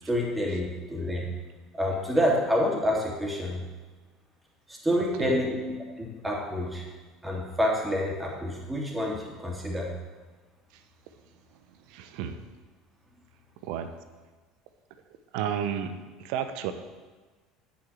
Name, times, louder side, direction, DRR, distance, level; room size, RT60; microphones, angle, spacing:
voice 1, 0.0-1.3 1.7-3.6 4.7-5.6 6.0-6.8 7.2-9.9, equal, 10° right, -2 dB, 3.2 m, -28 dB
voice 2, 11.7-12.4 13.6-13.9 15.3-16.7, right 9 dB, 65° right, 9 dB, 0.9 m, -32 dB
8.9 x 7.2 x 7.2 m, 1.3 s
hypercardioid pair, 70°, 0 cm